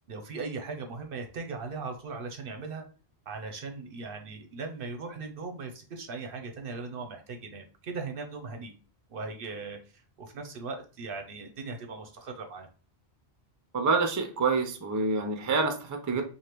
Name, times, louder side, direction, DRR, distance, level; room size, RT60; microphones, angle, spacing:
voice 1, 0.1-2.8 3.3-8.7 9.1-9.8 10.2-12.7, right 4 dB, 60° right, 5 dB, 0.7 m, -38 dB
voice 2, 13.7-16.2, right 4 dB, 25° right, 5 dB, 0.5 m, -27 dB
4.8 x 2.5 x 2.9 m, 0.38 s
omnidirectional pair, 1.1 m